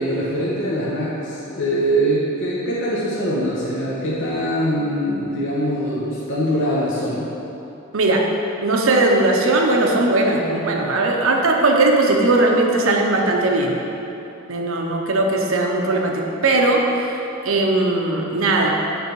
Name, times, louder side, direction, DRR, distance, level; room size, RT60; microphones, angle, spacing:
voice 1, 0.0-7.3, equal, 65° left, -8 dB, 1.1 m, -23 dB
voice 2, 7.9-8.3 8.6-13.8 14.5-17.2 17.4-18.7, right 2 dB, 70° right, 1 dB, 0.7 m, -18 dB
8.3 x 3.5 x 4.6 m, 3.0 s
head